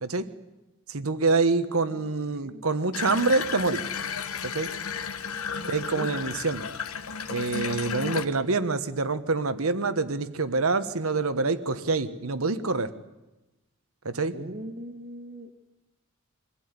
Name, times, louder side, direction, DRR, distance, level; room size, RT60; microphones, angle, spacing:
voice 1, 0.9-3.8 4.4-4.7 5.7-6.6 7.3-12.9 14.0-14.3, right 3 dB, 80° right, 11 dB, 1.4 m, -26 dB
voice 2, 2.3-2.6 5.5-6.3 14.3-15.5, right 1 dB, 45° right, 5 dB, 1.7 m, -40 dB
Water tap faucet / Bathtub (filling or washing), 2.9-8.3, left 6 dB, 85° left, 1.3 m, -33 dB
24.5 x 16.0 x 9.7 m, 1.0 s
head